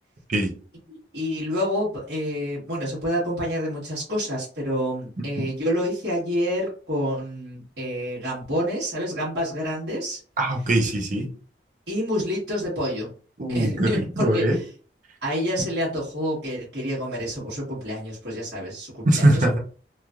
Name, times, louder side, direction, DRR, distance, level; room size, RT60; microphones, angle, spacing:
voice 1, 1.1-10.2 11.9-13.1 13.5-14.6 15.2-19.4, equal, 75° right, -7 dB, 1.3 m, -28 dB
voice 2, 10.4-11.3 13.4-14.6 19.0-19.6, right 1 dB, 45° right, 1 dB, 0.6 m, -21 dB
3.1 x 2.5 x 2.3 m, 0.39 s
head